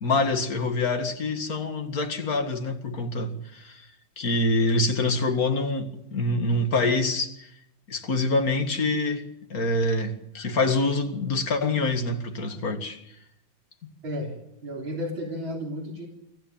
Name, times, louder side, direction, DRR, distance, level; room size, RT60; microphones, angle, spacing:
voice 1, 0.0-3.8 4.2-7.4 7.9-13.0, left 2 dB, 45° left, 2.3 m, -26 dB
voice 2, 14.0-14.3 14.6-16.1, equal, 70° right, 4.5 m, -32 dB
24.0 x 14.5 x 8.8 m
omnidirectional pair, 2.2 m